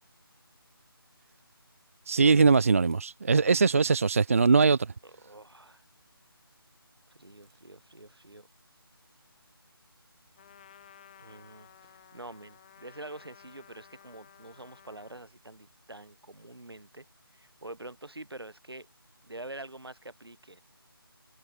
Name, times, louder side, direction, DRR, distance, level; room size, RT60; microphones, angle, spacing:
voice 1, 2.1-4.8, right 4 dB, 35° right, 0.5 m, -21 dB
voice 2, 5.0-5.8 7.1-8.5 11.2-17.1 17.3-18.9 19.2-20.6, right 2 dB, 80° right, 6.8 m, -46 dB
Trumpet, 10.4-15.3, left 10 dB, 20° left, 2.0 m, -55 dB
figure-of-eight pair, 160°, 13 cm